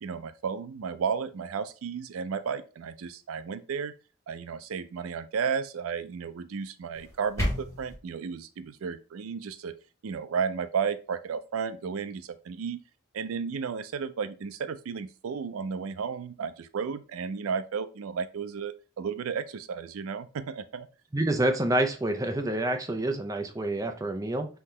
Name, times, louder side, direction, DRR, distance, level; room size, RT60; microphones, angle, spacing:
voice 1, 0.0-3.9 4.3-9.7 10.0-12.8 13.1-20.9, right 6 dB, 85° right, 12 dB, 0.4 m, -33 dB
sound 1, 6.9-7.9, equal, 15° left, 1.4 m, -31 dB
voice 2, 21.1-24.5, right 1 dB, 15° right, 5 dB, 0.5 m, -27 dB
5.6 x 2.8 x 3.2 m, 0.34 s
head